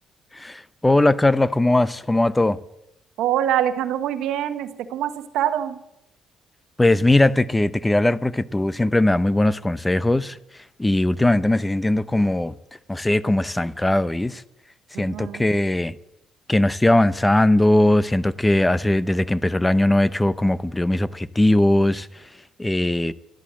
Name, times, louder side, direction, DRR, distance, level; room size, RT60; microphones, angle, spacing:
voice 1, 0.3-2.6 6.8-10.4 10.8-12.6 12.9-14.4 15.0-15.9 16.5-22.2 22.6-23.1, left 1 dB, 15° left, 0.7 m, -19 dB
voice 2, 3.2-5.8 14.9-15.4, right 11 dB, 80° right, 1.0 m, -24 dB
13.0 x 11.5 x 7.6 m
supercardioid pair, 75°, 0 cm